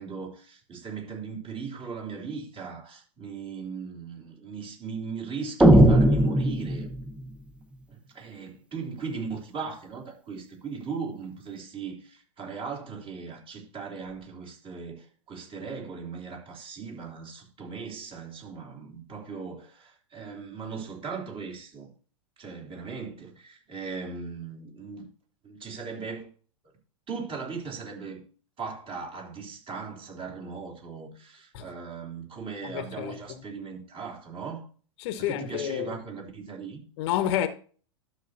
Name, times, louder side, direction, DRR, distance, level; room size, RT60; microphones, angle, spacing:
voice 1, 0.0-6.9 7.9-21.9 22.4-25.1 25.4-26.3 27.1-28.2 28.6-34.6 35.3-36.8, right 5 dB, 30° right, 3.5 m, -38 dB
sound 1, 5.6-7.2, right 1 dB, 5° right, 0.8 m, -18 dB
voice 2, 32.6-33.4 35.0-36.0 37.0-37.5, left 11 dB, 55° left, 1.1 m, -30 dB
12.0 x 6.8 x 2.8 m
hypercardioid pair, 100°, 17 cm